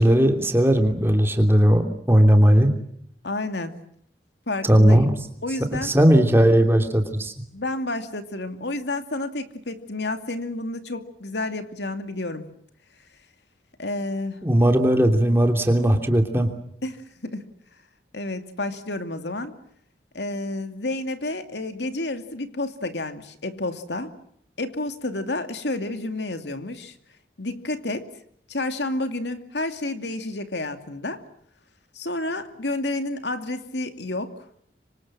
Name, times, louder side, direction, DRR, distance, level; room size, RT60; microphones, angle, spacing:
voice 1, 0.0-2.7 4.6-5.1 5.8-7.3 14.4-16.5, equal, 15° right, 4 dB, 3.0 m, -17 dB
voice 2, 3.2-3.7 4.5-5.1 5.4-5.9 7.5-12.4 13.8-14.4 16.8-17.4 18.1-19.6 20.1-24.1 24.6-26.9 27.4-28.1 28.5-31.2 31.9-34.3, left 2 dB, 80° left, 8 dB, 2.6 m, -30 dB
26.0 x 25.5 x 7.6 m, 0.68 s
head